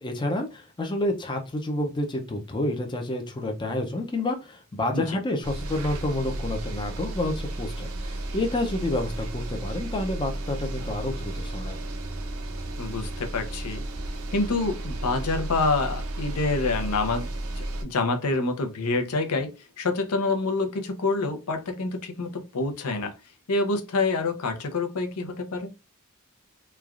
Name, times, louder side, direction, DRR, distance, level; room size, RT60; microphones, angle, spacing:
voice 1, 0.0-11.8, left 1 dB, 20° left, 0.4 m, -29 dB
sound 1, 5.4-17.8, right 1 dB, 70° right, 0.5 m, -33 dB
voice 2, 12.8-13.8 14.3-23.1 23.5-25.7, left 3 dB, 85° left, 0.6 m, -27 dB
3.1 x 2.3 x 2.3 m
head